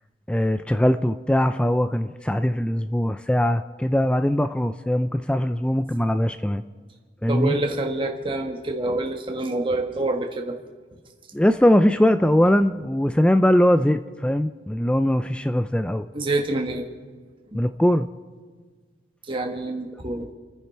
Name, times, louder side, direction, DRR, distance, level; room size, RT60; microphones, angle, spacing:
voice 1, 0.3-6.6 7.2-7.5 11.3-16.1 17.5-18.1, left 1 dB, 5° left, 10 dB, 0.3 m, -21 dB
voice 2, 7.3-10.6 16.1-16.8 19.3-20.3, right 2 dB, 30° right, 2 dB, 1.3 m, -26 dB
30.0 x 10.0 x 4.5 m, 1.5 s
head